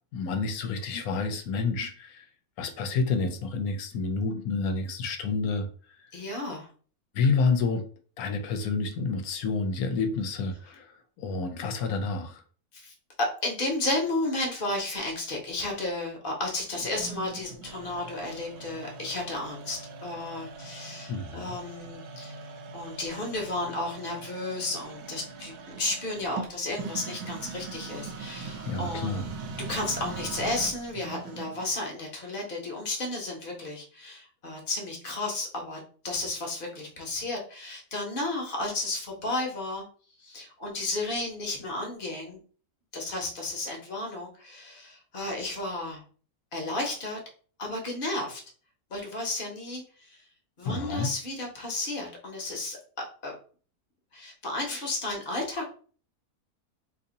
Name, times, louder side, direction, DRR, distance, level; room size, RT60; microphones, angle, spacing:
voice 1, 0.1-2.3 2.6-5.7 6.0-6.1 7.1-7.8 8.2-12.4 21.1-21.6 28.7-29.3 50.6-51.1, left 4 dB, 75° left, 7 dB, 1.1 m, -29 dB
voice 2, 6.1-6.7 12.7-22.4 22.7-29.2 29.7-39.8 40.2-42.4 42.9-46.0 46.5-47.2 47.6-48.4 48.9-50.2 50.6-53.3 54.1-55.7, left 2 dB, 40° left, 1 dB, 1.0 m, -33 dB
sound 1, 16.7-31.7, right 4 dB, 90° right, 1.1 m, -41 dB
2.8 x 2.7 x 3.8 m, 0.42 s
omnidirectional pair, 1.6 m